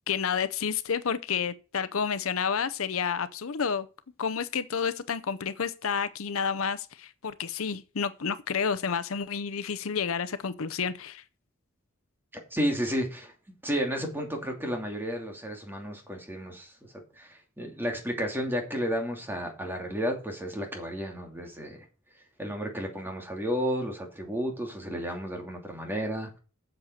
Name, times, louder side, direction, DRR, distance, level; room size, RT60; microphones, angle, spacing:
voice 1, 0.1-3.9 4.2-11.2, left 6 dB, 70° left, 0.7 m, -30 dB
voice 2, 12.5-13.3 13.6-21.8 22.4-26.4, equal, 10° right, 2.6 m, -32 dB
7.8 x 7.2 x 6.5 m
head